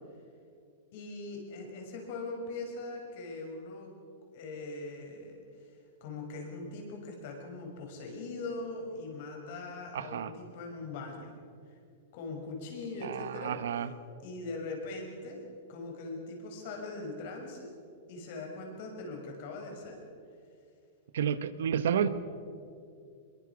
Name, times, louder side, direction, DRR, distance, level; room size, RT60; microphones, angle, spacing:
voice 1, 0.9-3.9 4.3-11.4 11.7-11.8 12.1-13.6 14.2-15.4 15.7-17.7 18.1-20.0, left 3 dB, 45° left, 1 dB, 6.0 m, -41 dB
voice 2, 9.9-10.3 13.0-13.9 21.1-22.1, right 8 dB, 75° right, 13 dB, 1.3 m, -30 dB
25.0 x 22.5 x 6.2 m, 2.5 s
supercardioid pair, 170°, 0 cm